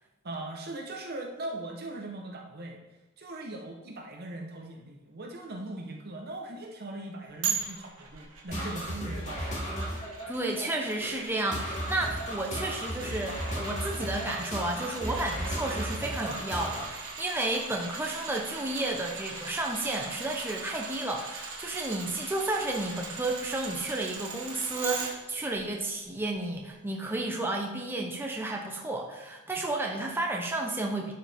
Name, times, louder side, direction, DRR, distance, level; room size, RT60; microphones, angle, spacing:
voice 1, 0.2-2.8 3.2-9.5, right 2 dB, 45° right, 1 dB, 0.9 m, -40 dB
sound 1, 7.4-25.1 25.5-25.6, right 5 dB, 75° right, 1.5 m, -40 dB
sound 2, 8.5-16.9, equal, 35° left, 2.3 m, -35 dB
voice 2, 10.3-31.1, right 2 dB, 10° right, 0 dB, 0.7 m, -32 dB
11.5 x 4.9 x 3.5 m, 1.0 s
head